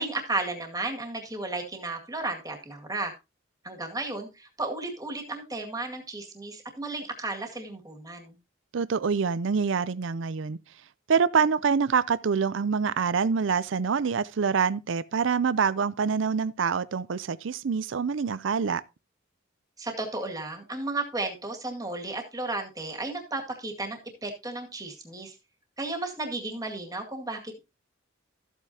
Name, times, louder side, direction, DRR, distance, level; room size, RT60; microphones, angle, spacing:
voice 1, 0.0-3.1 3.6-8.4 19.8-25.4 25.8-27.6, right 2 dB, 20° right, 2.0 m, -34 dB
voice 2, 8.7-10.6 11.1-18.8, right 6 dB, 70° right, 0.5 m, -26 dB
13.5 x 8.2 x 2.8 m
head